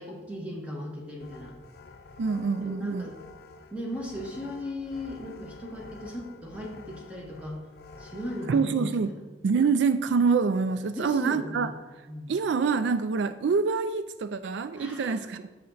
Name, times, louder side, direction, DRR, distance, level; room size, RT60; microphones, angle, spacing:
voice 1, 0.0-1.5 2.6-3.2 3.7-7.6 8.0-9.2 10.9-11.8 12.1-12.4 14.8-15.2, left 1 dB, 5° right, -2 dB, 1.5 m, -37 dB
sound 1, 1.2-8.6, left 3 dB, 55° left, 0.5 m, -48 dB
voice 2, 2.2-3.1 8.5-9.1 9.4-11.7 12.3-15.5, right 5 dB, 75° right, 12 dB, 0.4 m, -26 dB
7.6 x 7.5 x 4.0 m, 1.2 s
head